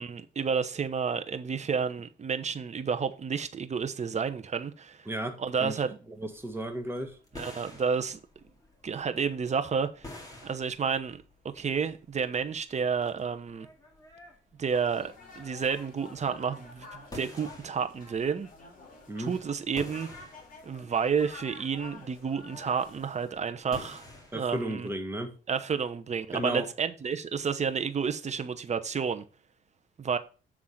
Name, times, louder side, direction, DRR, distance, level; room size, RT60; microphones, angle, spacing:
voice 1, 0.0-5.1 5.4-6.0 7.3-8.2 8.8-10.1 10.4-11.2 11.5-13.7 14.6-18.5 19.2-20.1 20.6-24.1 24.3-24.9 25.5-29.2 30.0-30.2, right 6 dB, 35° right, 0.9 m, -30 dB
voice 2, 5.1-5.8 6.2-7.2 19.1-19.3 24.3-25.3 26.3-26.7, right 1 dB, 10° right, 1.5 m, -34 dB
sound 1, 6.2-25.0, left 2 dB, 20° left, 2.3 m, -50 dB
sound 2, 14.7-23.4, left 3 dB, 40° left, 2.9 m, -50 dB
7.3 x 3.6 x 6.4 m
cardioid pair, 90°, 20 cm